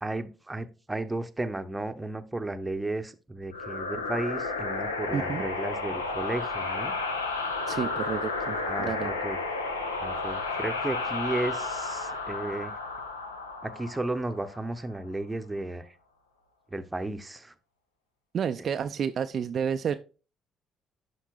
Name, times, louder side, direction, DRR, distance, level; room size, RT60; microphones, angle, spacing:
voice 1, 0.0-6.9 8.6-9.7 10.0-12.7 13.6-15.9 16.7-17.5, right 2 dB, 15° right, 9 dB, 0.8 m, -34 dB
sound 1, 3.5-14.8, left 3 dB, 90° left, 0.6 m, -32 dB
voice 2, 5.1-5.4 7.7-9.1 18.3-19.9, right 7 dB, 50° right, 9 dB, 0.3 m, -30 dB
11.5 x 4.5 x 2.3 m, 0.34 s
figure-of-eight pair, 45°, 0 cm